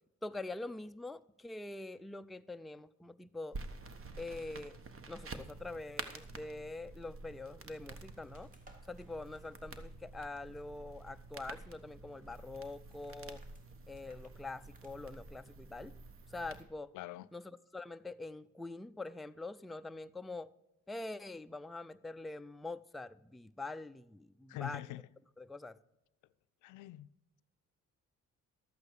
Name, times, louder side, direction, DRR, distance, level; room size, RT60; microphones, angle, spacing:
voice 1, 0.2-3.6 4.2-4.8 5.1-8.5 8.9-13.4 13.9-15.9 16.3-16.9 17.3-20.5 20.9-24.8 25.4-25.7, left 2 dB, ahead, 0.3 m, -44 dB
sound 1, 3.5-16.6, right 3 dB, 45° right, 1.2 m, -49 dB
sound 2, 7.9-15.0, right 1 dB, 25° right, 2.1 m, -67 dB
voice 2, 16.9-17.3 24.5-25.1 26.6-27.1, left 14 dB, 80° left, 0.5 m, -44 dB
12.5 x 8.4 x 4.9 m
cardioid pair, 90°, 30 cm